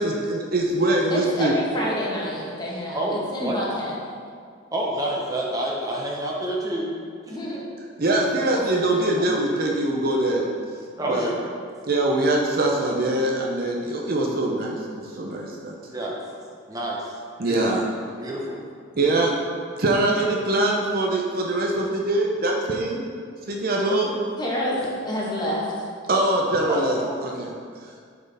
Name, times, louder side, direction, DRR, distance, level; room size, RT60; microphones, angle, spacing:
voice 1, 0.0-1.5 8.0-10.5 11.1-11.3 11.9-15.7 17.4-17.8 19.0-19.3 19.8-23.1 23.5-24.2 26.1-27.5, right 2 dB, 45° right, -1 dB, 0.6 m, -23 dB
voice 2, 1.1-4.1 7.3-7.6 8.5-9.3 24.4-25.9, equal, 20° left, -4 dB, 1.1 m, -28 dB
voice 3, 2.9-3.6 4.7-6.9 7.3-7.4 11.0-11.3 15.9-16.1 16.7-17.1 17.4-17.7 18.2-18.6 18.9-19.1 26.7-27.2, right 1 dB, 20° right, -3 dB, 0.9 m, -28 dB
8.5 x 4.5 x 3.4 m, 2.1 s
head